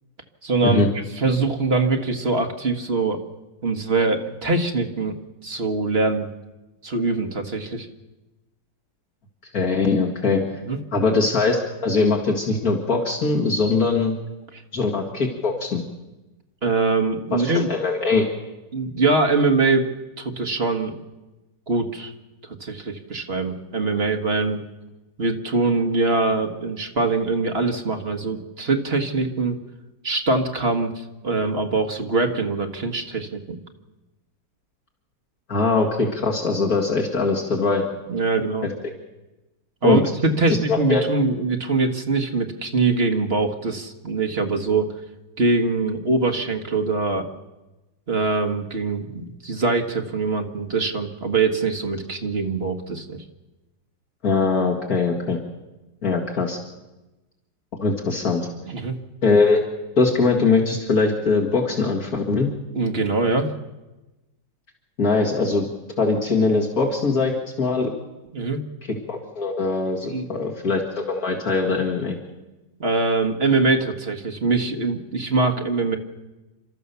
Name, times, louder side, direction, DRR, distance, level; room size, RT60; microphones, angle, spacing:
voice 1, 0.4-0.8 1.2-3.2 3.6-5.2 5.4-6.3 6.8-7.9 10.6-10.8 16.6-17.7 18.7-19.9 20.2-21.0 21.7-22.1 22.6-24.6 25.2-29.6 30.0-33.6 38.1-38.7 39.8-44.9 45.4-47.3 48.1-53.2 58.6-58.9 62.7-63.5 68.3-68.6 70.1-70.3 72.8-76.0, right 3 dB, 35° right, 5 dB, 1.7 m, -23 dB
voice 2, 9.5-10.4 10.9-14.1 14.7-15.8 17.3-18.3 35.5-37.9 39.8-40.0 40.5-41.1 54.2-55.4 56.0-56.6 57.8-58.5 59.2-59.6 60.0-62.5 65.0-65.7 66.0-67.3 67.6-67.9 68.9-72.2, left 4 dB, 55° left, 0 dB, 2.5 m, -21 dB
29.0 x 13.0 x 6.9 m, 1.1 s
omnidirectional pair, 1.9 m